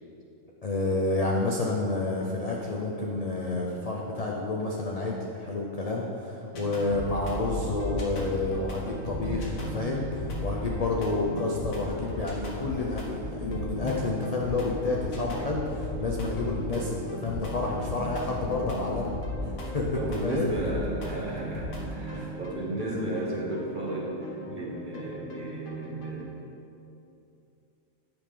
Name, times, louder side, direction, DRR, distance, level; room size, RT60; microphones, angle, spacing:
voice 1, 0.6-19.2 19.4-20.5 22.1-22.3 24.5-24.6, left 2 dB, 50° left, -2 dB, 0.4 m, -30 dB
sound 1, 6.5-26.3, left 1 dB, 75° left, 1.4 m, -36 dB
voice 2, 20.0-26.3, right 1 dB, 40° right, -4 dB, 1.1 m, -34 dB
8.7 x 5.0 x 3.7 m, 2.7 s
omnidirectional pair, 1.4 m